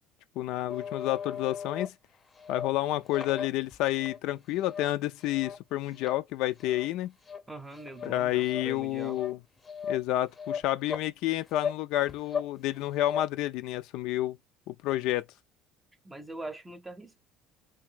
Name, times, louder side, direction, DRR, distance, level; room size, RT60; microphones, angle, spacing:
voice 1, 0.4-1.9 2.5-7.1 8.0-9.4 9.9-14.4 14.7-15.2, left 15 dB, 70° left, 0.4 m, -30 dB
sound 1, 0.7-1.9 2.4-2.7 3.1-4.2 4.6-4.9 5.2-5.6 6.0-6.2 6.6-6.9 7.3-7.4 7.8-8.1 8.5-8.6 9.1-9.3 9.6-10.0 10.4-11.1 11.6-11.8 12.1-12.5 12.8-13.2, left 7 dB, 20° left, 0.7 m, -36 dB
voice 2, 7.5-9.2 16.0-17.2, right 2 dB, 10° right, 0.7 m, -42 dB
2.8 x 2.7 x 3.7 m
cardioid pair, 115°, 0 cm